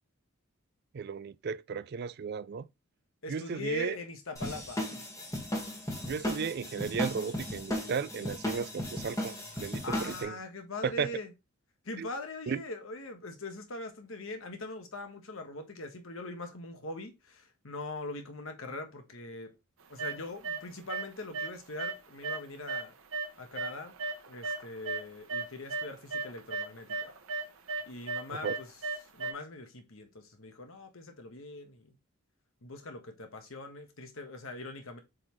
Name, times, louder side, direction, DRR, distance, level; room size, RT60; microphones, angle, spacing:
voice 1, 0.9-2.7 3.3-4.0 6.0-10.3 10.8-11.1 12.0-12.1 12.5-12.6 28.4-28.5, right 6 dB, 50° right, 0.4 m, -35 dB
voice 2, 3.2-5.0 9.8-11.3 11.8-19.5 19.9-22.9 23.4-23.9 24.3-27.1 27.9-28.7 29.1-32.0 32.6-35.0, left 2 dB, 70° left, 1.3 m, -42 dB
sound 1, 4.4-10.2, left 1 dB, 15° left, 1.7 m, -36 dB
sound 2, 20.0-20.6 20.9-21.5 21.8-25.0 25.3-29.3, right 3 dB, 75° right, 1.0 m, -35 dB
7.7 x 3.9 x 3.1 m
head